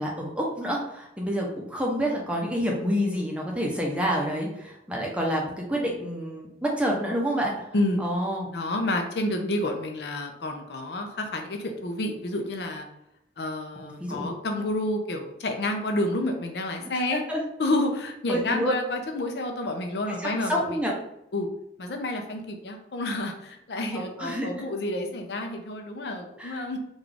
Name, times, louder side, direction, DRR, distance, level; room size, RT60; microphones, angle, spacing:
voice 1, 0.0-7.7 8.0-8.5 9.3-9.4 13.8-14.3 17.1-17.4 18.3-18.7 20.1-20.9 23.9-24.5 26.4-26.6, equal, 5° right, -2 dB, 0.6 m, -28 dB
voice 2, 8.5-12.9 13.4-17.2 17.6-20.8 21.3-21.5 21.8-26.8, left 1 dB, 70° left, 4 dB, 0.5 m, -29 dB
3.8 x 2.4 x 3.3 m, 0.82 s
head